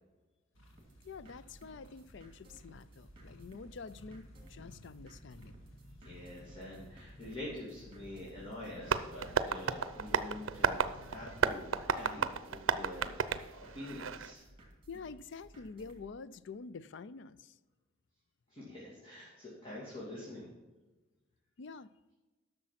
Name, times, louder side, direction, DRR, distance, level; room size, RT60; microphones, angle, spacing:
sound 1, 0.5-11.5, left 1 dB, 85° left, 1.9 m, -56 dB
sound 2, 0.8-16.0, right 1 dB, 25° right, 2.6 m, -58 dB
voice 1, 1.0-5.6 14.9-17.6 21.6-21.9, left 4 dB, 65° left, 16 dB, 0.4 m, -47 dB
voice 2, 6.0-14.4 18.5-20.5, left 1 dB, 30° left, -6 dB, 2.4 m, -46 dB
Tap, 8.8-14.3, right 6 dB, 80° right, 0.6 m, -33 dB
11.5 x 6.6 x 5.8 m, 1.2 s
head